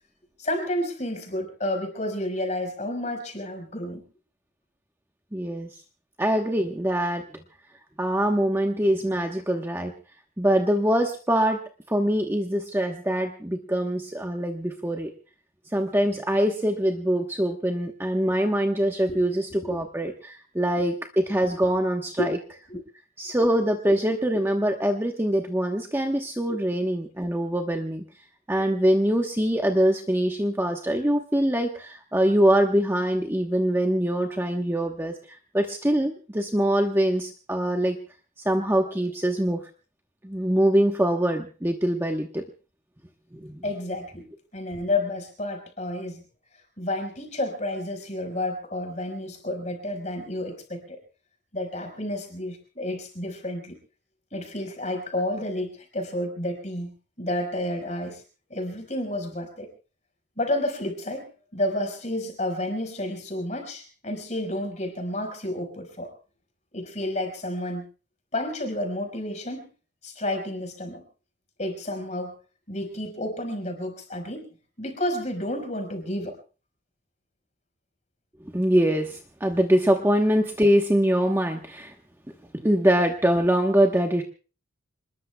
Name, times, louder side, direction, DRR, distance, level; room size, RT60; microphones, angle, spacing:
voice 1, 0.4-4.0 19.1-19.3 19.6-19.8 20.7-20.8 22.2-22.3 22.7-22.8 26.5-26.6 43.6-44.3 44.5-46.2 46.8-51.0 51.5-53.8 54.3-58.2 58.5-59.7 60.4-66.1 66.7-67.9 68.3-69.7 70.0-71.0 71.6-72.3 72.7-74.5 74.8-76.3, left 1 dB, 35° left, 5 dB, 4.9 m, -30 dB
voice 2, 5.3-5.7 6.2-7.2 8.0-9.9 10.4-11.6 11.9-15.1 15.7-22.4 23.2-28.0 28.5-35.1 35.5-38.0 38.4-39.6 40.2-42.4 43.3-43.6 78.5-81.9 82.5-84.2, right 1 dB, 10° right, 3 dB, 1.1 m, -23 dB
27.0 x 20.5 x 2.3 m, 0.36 s
head